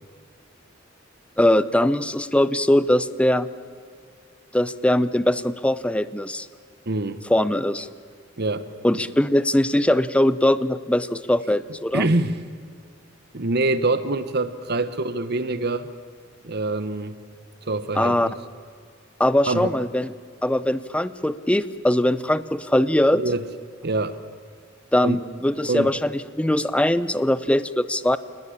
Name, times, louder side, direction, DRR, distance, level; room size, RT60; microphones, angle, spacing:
voice 1, 1.4-3.5 4.5-6.5 7.3-7.9 8.8-12.0 18.0-18.3 19.2-20.1 20.4-23.2 24.9-28.2, left 1 dB, 5° left, 14 dB, 0.6 m, -21 dB
voice 2, 6.9-7.3 8.4-8.7 11.9-12.4 13.3-15.9 16.4-17.2 17.7-18.3 19.4-19.7 23.1-23.5 23.8-24.2 25.0-25.2 25.7-25.9, right 2 dB, 55° right, 12 dB, 1.3 m, -25 dB
29.0 x 19.5 x 8.7 m, 2.1 s
head